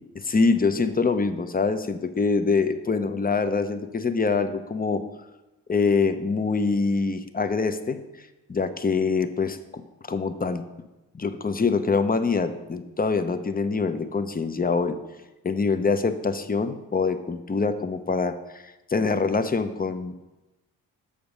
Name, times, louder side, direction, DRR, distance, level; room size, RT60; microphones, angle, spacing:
voice 1, 0.2-5.0 5.7-8.0 8.5-9.8 10.1-10.6 11.1-15.0 15.4-20.1, left 4 dB, 20° left, 10 dB, 0.8 m, -24 dB
7.0 x 5.1 x 5.2 m, 1.0 s
hypercardioid pair, 40°, 41 cm